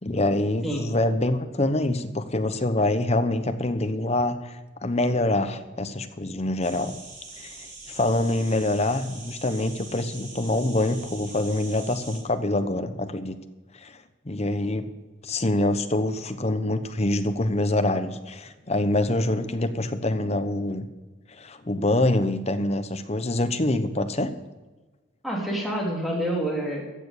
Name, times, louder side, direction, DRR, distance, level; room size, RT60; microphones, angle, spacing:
voice 1, 0.0-4.6 4.8-6.9 7.4-13.4 13.7-14.0 14.2-14.9 15.2-20.9 21.3-24.3, left 1 dB, 30° left, 9 dB, 0.9 m, -25 dB
sound 1, 6.6-12.2, right 3 dB, 40° right, 4.4 m, -43 dB
voice 2, 25.2-26.8, right 1 dB, ahead, -3 dB, 3.3 m, -27 dB
15.0 x 6.9 x 8.4 m, 1.2 s
head